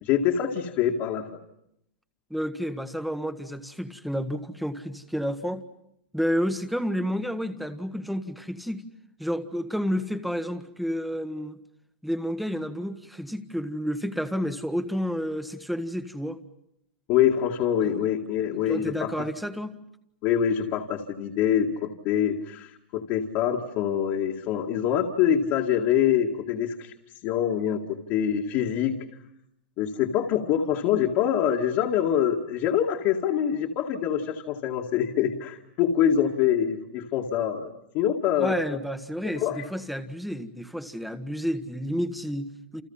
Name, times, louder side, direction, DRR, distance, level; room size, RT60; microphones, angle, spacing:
voice 1, 0.0-1.2 17.1-19.3 20.2-26.9 27.2-29.0 29.8-38.6 39.2-39.6, left 9 dB, 40° left, -1 dB, 2.2 m, -25 dB
voice 2, 2.3-5.6 6.1-8.9 9.2-11.6 12.0-16.4 17.8-18.1 18.5-19.8 38.4-42.8, equal, ahead, 10 dB, 1.5 m, -30 dB
30.0 x 29.0 x 5.7 m, 0.77 s
supercardioid pair, 160°, 6 cm